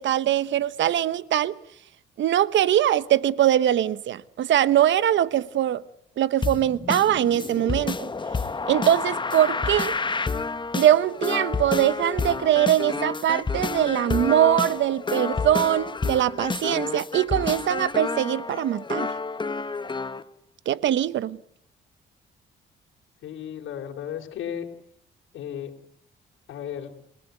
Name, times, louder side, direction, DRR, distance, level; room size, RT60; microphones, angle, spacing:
voice 1, 0.0-1.5 2.2-5.8 6.2-8.1 8.7-10.0 10.7-19.1 20.7-21.4, right 11 dB, 70° right, 1.1 m, -22 dB
sound 1, 6.4-20.2, left 4 dB, 25° left, 1.3 m, -29 dB
voice 2, 23.2-24.7 25.3-25.7 26.5-26.9, left 9 dB, 80° left, 3.6 m, -34 dB
29.5 x 17.5 x 9.3 m
cardioid pair, 90°, 20 cm